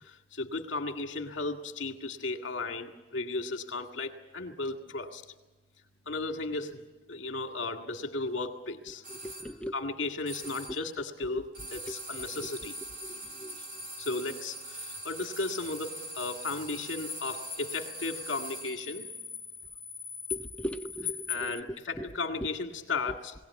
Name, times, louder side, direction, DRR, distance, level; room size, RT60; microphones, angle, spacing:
voice 1, 0.0-5.2 6.1-9.0 9.7-12.8 14.0-19.1 21.3-23.4, left 3 dB, 70° left, 4 dB, 1.9 m, -35 dB
sound 1, 9.0-9.5 10.3-10.9 11.5-18.9, right 1 dB, 45° right, 3.3 m, -42 dB
voice 2, 9.2-9.7 11.3-11.4 11.9-12.0 13.0-13.5 20.3-21.5, equal, 5° left, 7 dB, 0.6 m, -38 dB
sound 2, 15.7-21.6, left 8 dB, 40° left, 0.9 m, -41 dB
21.5 x 17.5 x 8.3 m, 1.2 s
head